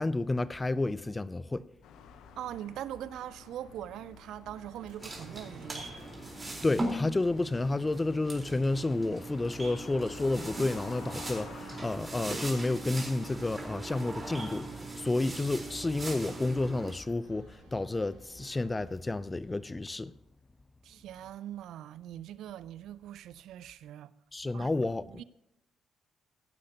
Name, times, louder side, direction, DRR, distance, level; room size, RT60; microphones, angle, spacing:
voice 1, 0.0-1.7 6.6-20.1 24.3-25.2, left 2 dB, 25° left, 0.6 m, -31 dB
sound 1, 1.8-19.6, left 7 dB, 70° left, 0.9 m, -53 dB
voice 2, 2.4-6.0 20.8-24.1 24.5-25.2, right 11 dB, 70° right, 0.4 m, -42 dB
sound 2, 4.4-19.2, right 3 dB, 90° right, 2.6 m, -59 dB
sound 3, 5.0-16.9, right 2 dB, 30° right, 4.1 m, -40 dB
16.0 x 11.5 x 2.9 m
hypercardioid pair, 40°, 0 cm